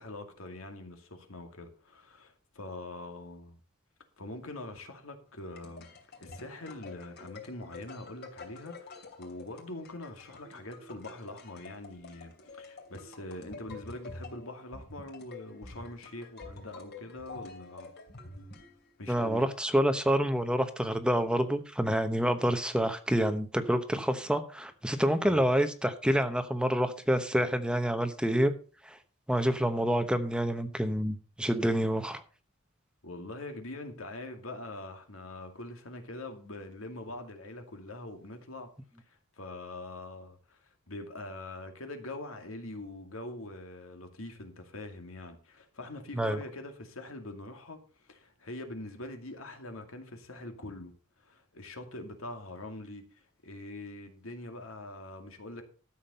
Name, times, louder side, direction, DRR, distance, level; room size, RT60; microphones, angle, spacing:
voice 1, 0.0-3.6 4.2-5.9 6.2-17.9 19.0-19.5 25.2-25.5 33.0-38.7 39.1-50.9 51.2-55.6, left 2 dB, 75° left, 2.3 m, -43 dB
sound 1, 5.3-19.1, left 3 dB, 50° left, 3.1 m, -48 dB
voice 2, 19.1-28.5 28.8-29.0 29.3-32.2 46.1-46.4, equal, 5° right, 0.9 m, -27 dB
13.0 x 7.3 x 5.5 m
head